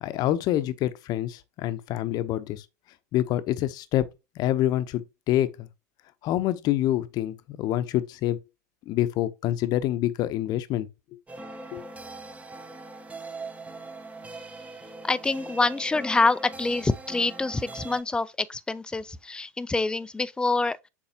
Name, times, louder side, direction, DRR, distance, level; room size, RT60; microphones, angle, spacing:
voice 1, 0.0-2.6 3.1-4.1 4.4-5.7 6.2-8.4 8.9-10.9 11.7-11.8, left 13 dB, 45° left, 0.8 m, -26 dB
sound 1, 11.3-18.0, right 2 dB, 15° right, 0.9 m, -41 dB
voice 2, 15.0-20.8, left 3 dB, 10° left, 0.5 m, -26 dB
7.1 x 4.7 x 2.8 m
hypercardioid pair, 90°, 9 cm